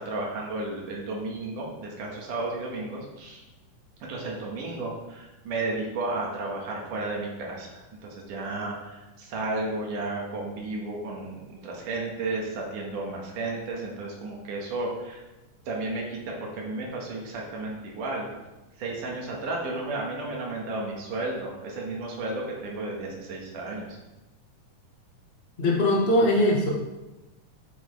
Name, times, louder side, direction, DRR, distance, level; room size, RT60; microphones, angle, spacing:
voice 1, 0.0-3.4 4.1-15.2 15.7-18.3 18.8-23.9, right 2 dB, 70° right, -2 dB, 3.1 m, -33 dB
voice 2, 25.6-26.7, left 1 dB, 50° left, -3 dB, 0.6 m, -21 dB
8.9 x 8.7 x 3.5 m, 1.1 s
omnidirectional pair, 3.8 m